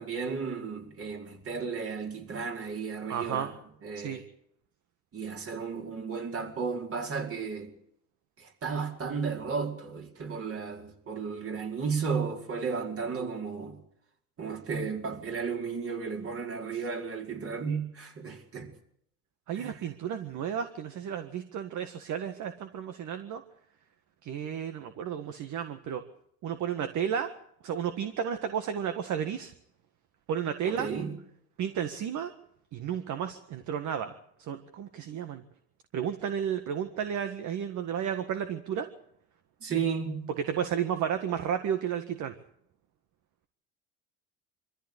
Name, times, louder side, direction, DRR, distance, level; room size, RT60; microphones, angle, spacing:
voice 1, 0.0-3.5 3.8-4.2 5.1-7.7 8.4-13.8 14.4-18.7 19.6-19.7 30.6-31.1 39.6-40.3, right 5 dB, 40° right, 5.0 m, -34 dB
voice 2, 3.1-3.5 3.9-4.2 16.7-16.8 17.6-17.8 19.5-23.4 24.2-26.0 26.4-27.3 27.6-29.5 30.3-30.9 31.6-32.3 32.7-35.4 35.9-38.9 40.4-42.3, right 8 dB, 60° right, 1.8 m, -32 dB
24.0 x 15.0 x 8.3 m
cardioid pair, 110°, 34 cm